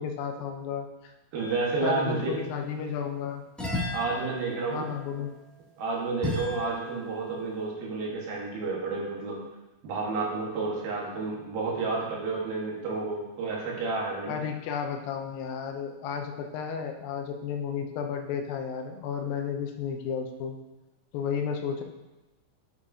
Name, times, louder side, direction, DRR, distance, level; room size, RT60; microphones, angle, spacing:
voice 1, 0.0-1.1 1.8-3.4 4.7-5.3 14.3-20.6 21.1-21.8, left 6 dB, 85° left, 4 dB, 2.5 m, -33 dB
voice 2, 1.3-2.4 3.9-4.9 5.8-9.4 9.8-14.3, right 3 dB, 80° right, -3 dB, 3.3 m, -30 dB
sound 1, 1.4-2.1 3.6-7.2, left 2 dB, ahead, 1.6 m, -36 dB
8.6 x 7.3 x 2.7 m, 1.1 s
omnidirectional pair, 4.0 m